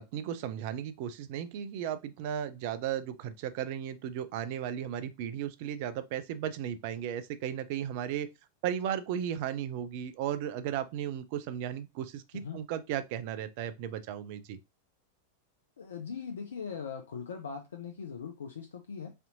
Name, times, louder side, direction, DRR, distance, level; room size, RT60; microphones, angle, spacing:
voice 1, 0.0-8.3 8.6-14.6, right 10 dB, 50° right, 0.4 m, -35 dB
voice 2, 15.8-19.1, left 6 dB, 65° left, 0.4 m, -40 dB
4.2 x 2.7 x 2.5 m
figure-of-eight pair, 90°, 0 cm